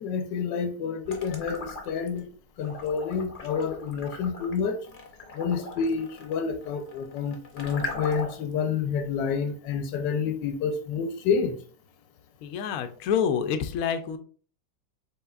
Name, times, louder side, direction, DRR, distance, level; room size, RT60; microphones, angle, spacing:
voice 1, 0.0-2.2 2.6-4.8 5.4-11.5, left 6 dB, 85° left, 1.4 m, -29 dB
sound 1, 1.1-2.2 2.6-8.5, left 3 dB, 40° left, 0.8 m, -39 dB
voice 2, 12.4-14.2, left 7 dB, 70° left, 0.9 m, -27 dB
5.5 x 4.0 x 2.4 m
omnidirectional pair, 1.9 m